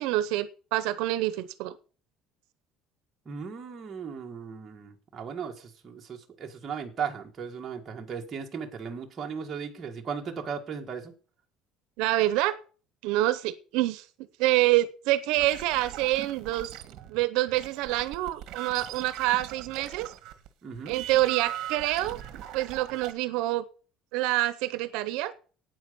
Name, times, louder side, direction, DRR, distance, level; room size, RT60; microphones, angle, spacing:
voice 1, 0.0-1.7 12.0-12.6 13.0-14.1 14.4-16.7 17.1-20.1 20.9-22.2 22.5-23.6 24.1-25.3, right 16 dB, 80° right, 0.8 m, -26 dB
voice 2, 3.2-11.1 20.6-21.0, right 6 dB, 25° right, 1.7 m, -37 dB
sound 1, 15.4-20.5 20.7-23.1, right 12 dB, 55° right, 1.4 m, -40 dB
8.9 x 8.9 x 6.9 m
cardioid pair, 170°, 0 cm